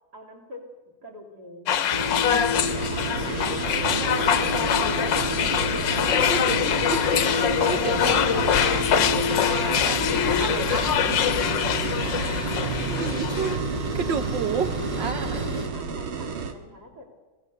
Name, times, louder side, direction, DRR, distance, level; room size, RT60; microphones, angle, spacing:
voice 1, 0.1-0.7 1.0-5.7 15.1-17.1, left 1 dB, 50° right, 0 dB, 3.9 m, -45 dB
sound 1, 1.7-13.6, left 9 dB, 70° left, 1.5 m, -24 dB
sound 2, 1.9-15.7, left 1 dB, 25° right, 1.0 m, -30 dB
voice 2, 2.3-2.7 6.3-10.0 10.4-10.9 12.3-13.7 13.9-15.5, right 6 dB, 65° right, 7 dB, 1.6 m, -32 dB
sound 3, 2.6-16.5, right 5 dB, 80° right, 2.4 m, -33 dB
26.5 x 16.0 x 6.8 m, 1.2 s
omnidirectional pair, 2.2 m